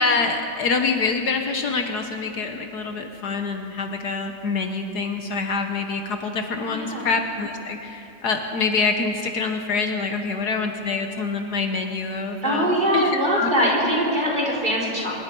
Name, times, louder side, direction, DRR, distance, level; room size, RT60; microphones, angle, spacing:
voice 1, 0.0-13.5, left 4 dB, 65° left, 5 dB, 1.6 m, -26 dB
voice 2, 6.6-7.1 12.4-15.2, equal, 25° right, -3 dB, 4.3 m, -22 dB
24.5 x 20.5 x 5.3 m, 2.9 s
omnidirectional pair, 1.9 m